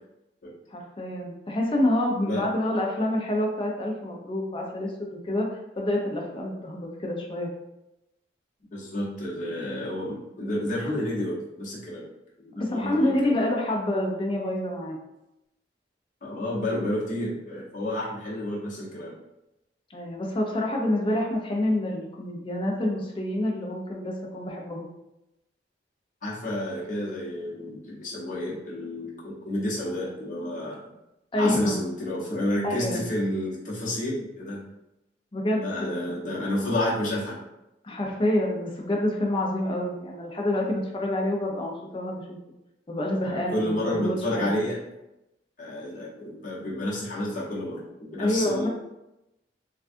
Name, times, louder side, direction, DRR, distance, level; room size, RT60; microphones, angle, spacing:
voice 1, 0.7-7.5 12.5-15.0 19.9-24.9 31.3-31.8 32.6-33.0 35.3-36.1 37.8-42.4 42.9-44.5 48.2-48.7, left 1 dB, 30° left, -1 dB, 0.5 m, -27 dB
voice 2, 8.7-12.1 12.4-13.3 16.2-19.2 26.2-30.8 31.4-34.6 35.6-37.4 43.2-44.8 45.6-48.7, left 1 dB, 45° left, -5 dB, 0.9 m, -30 dB
3.4 x 2.3 x 2.5 m, 0.91 s
head